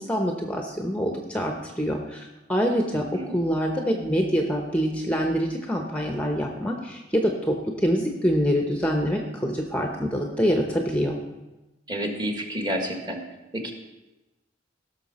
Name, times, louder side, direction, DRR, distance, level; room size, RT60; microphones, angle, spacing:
voice 1, 0.0-11.2, equal, 5° left, 2 dB, 0.8 m, -25 dB
voice 2, 2.9-3.4 11.9-13.2 13.5-13.7, equal, 25° right, 2 dB, 1.5 m, -30 dB
16.5 x 6.4 x 4.1 m, 1.1 s
head